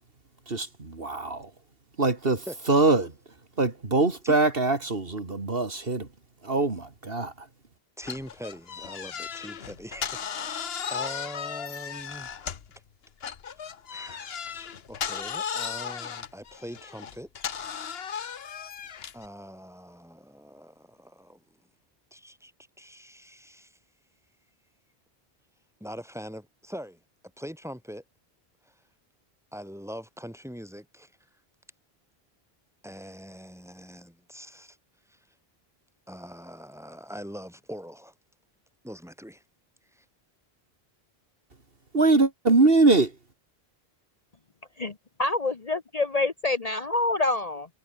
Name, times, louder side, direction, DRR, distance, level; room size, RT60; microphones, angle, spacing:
voice 1, 0.5-1.5 2.0-3.1 3.6-6.1 6.4-7.5 41.9-43.2, right 3 dB, 65° right, 2.7 m, -23 dB
voice 2, 2.5-2.8 4.2-4.4 8.0-12.4 13.6-17.7 19.1-21.4 22.1-22.5 22.8-23.8 25.8-27.0 27.4-28.0 28.6-28.8 29.5-31.1 32.8-34.8 35.1-35.3 36.1-38.1 38.8-39.4 39.9-40.0, equal, 5° right, 6.9 m, -43 dB
sound 1, 8.0-12.8 13.2-19.3, left 7 dB, 75° left, 1.2 m, -36 dB
voice 3, 44.8-47.7, left 2 dB, 40° left, 1.2 m, -27 dB
omnidirectional pair, 1.0 m